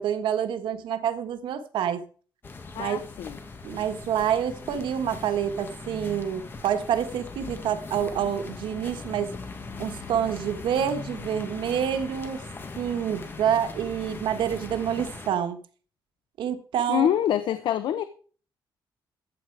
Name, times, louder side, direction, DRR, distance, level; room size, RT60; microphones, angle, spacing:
voice 1, 0.0-2.0 2.8-3.0 3.6-9.3 9.8-12.4 12.8-15.6 16.4-17.1, right 9 dB, 90° right, 1.4 m, -27 dB
sound 1, 2.4-15.3, left 4 dB, 25° left, 1.7 m, -40 dB
voice 2, 2.7-3.4 16.9-18.0, left 10 dB, 75° left, 0.8 m, -25 dB
14.5 x 8.9 x 4.7 m
cardioid pair, 175°, 8 cm